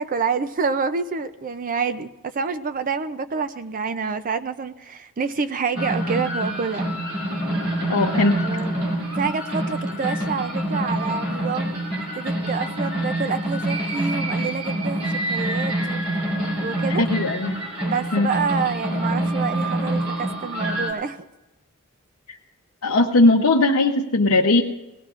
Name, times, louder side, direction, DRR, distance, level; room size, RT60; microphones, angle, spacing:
voice 1, 0.0-6.9 8.1-8.7 9.2-11.8 12.2-16.0 16.6-17.0 17.8-21.2, right 5 dB, 40° right, 11 dB, 0.4 m, -27 dB
sound 1, 5.7-20.9, right 1 dB, 70° right, 3.4 m, -26 dB
voice 2, 7.9-8.4 17.0-17.5 18.1-18.3 22.8-24.6, left 2 dB, 80° left, 0 dB, 0.8 m, -18 dB
19.5 x 17.5 x 2.5 m, 1.0 s
head